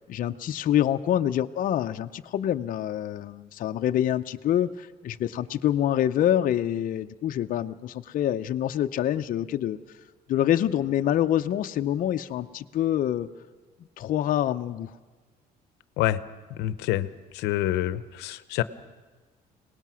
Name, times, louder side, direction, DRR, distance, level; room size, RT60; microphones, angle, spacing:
voice 1, 0.1-9.8 10.3-13.3 14.0-14.9, left 11 dB, 55° left, 7 dB, 0.6 m, -26 dB
voice 2, 16.6-17.1 17.3-18.6, left 14 dB, 90° left, 13 dB, 0.7 m, -26 dB
24.5 x 19.0 x 6.2 m, 1.3 s
cardioid pair, 110°, 17 cm